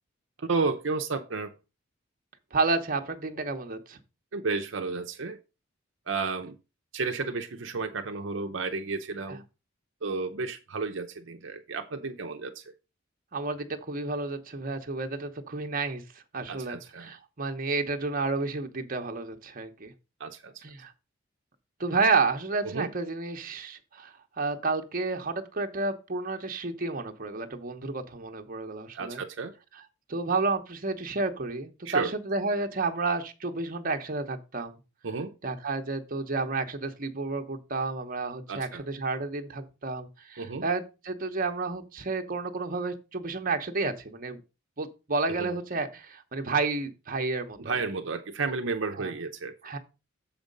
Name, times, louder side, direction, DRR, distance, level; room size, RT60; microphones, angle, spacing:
voice 1, 0.4-1.5 4.3-5.4 6.1-6.6 6.9-9.4 10.0-12.7 16.5-17.1 20.2-20.5 22.6-22.9 28.9-29.5 31.8-32.1 35.0-35.3 38.5-38.8 40.4-40.7 45.4-45.6 47.6-49.5, right 4 dB, 65° right, 0.7 m, -32 dB
voice 2, 2.5-4.0 13.3-16.0 16.3-19.9 20.6-20.9 21.8-29.2 30.1-34.8 35.4-44.4 44.8-47.8 49.0-49.1 49.6-49.8, right 3 dB, 45° right, 0.9 m, -31 dB
7.3 x 5.1 x 5.2 m
head